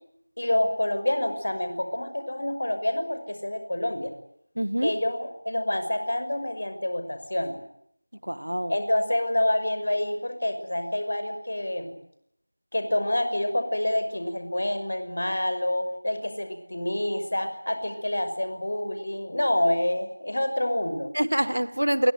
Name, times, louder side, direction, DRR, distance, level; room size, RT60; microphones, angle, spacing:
voice 1, 0.4-4.1 4.8-7.6 8.7-12.0 12.7-21.1, left 1 dB, 55° left, 6.2 m, -27 dB
voice 2, 4.6-5.0 8.2-8.7 21.1-22.1, right 1 dB, 75° right, 1.1 m, -25 dB
28.0 x 22.0 x 8.0 m
figure-of-eight pair, 170°, 0 cm